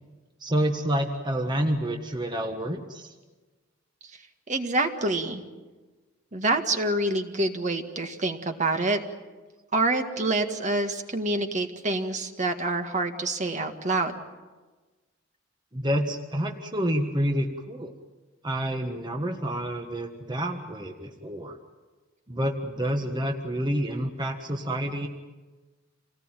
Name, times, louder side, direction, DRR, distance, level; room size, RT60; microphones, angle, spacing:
voice 1, 0.4-3.1 15.7-17.9 18.4-21.6 22.3-25.1, equal, 25° right, 3 dB, 1.5 m, -28 dB
voice 2, 4.5-5.4 6.3-9.0 9.7-14.1, right 2 dB, 40° right, 5 dB, 1.8 m, -26 dB
27.5 x 18.5 x 9.1 m, 1.3 s
head